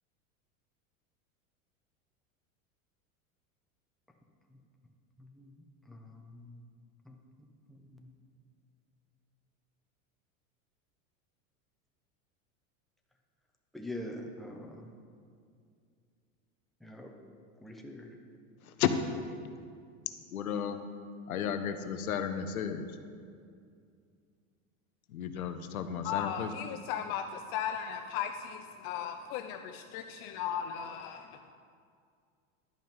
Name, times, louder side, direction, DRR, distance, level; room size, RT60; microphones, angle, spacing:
voice 1, 5.2-5.5 5.9-6.6 7.0-7.1 7.7-8.1 13.7-14.9 16.8-17.1 17.6-18.1, left 1 dB, ahead, 1 dB, 1.0 m, -44 dB
voice 2, 20.3-20.8 21.3-22.8 25.1-26.5, left 9 dB, 90° left, 9 dB, 0.7 m, -33 dB
voice 3, 26.0-31.5, left 8 dB, 50° left, 6 dB, 0.5 m, -37 dB
11.0 x 5.3 x 5.3 m, 2.3 s
hypercardioid pair, 95°, 42 cm